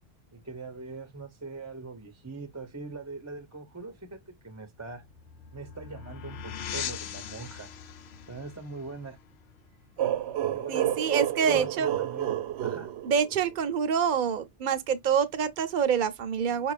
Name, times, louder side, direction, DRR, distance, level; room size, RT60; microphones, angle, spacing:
voice 1, 0.3-5.0 5.5-7.7 8.3-9.2 10.5-12.3 12.6-12.9, right 3 dB, 15° right, 0.7 m, -42 dB
sound 1, 4.8-10.2, left 8 dB, 80° left, 0.9 m, -41 dB
sound 2, 10.0-13.7, right 12 dB, 85° right, 0.9 m, -30 dB
voice 2, 10.7-11.9 13.0-16.7, right 7 dB, 50° right, 0.9 m, -26 dB
5.8 x 2.5 x 3.3 m
omnidirectional pair, 1.1 m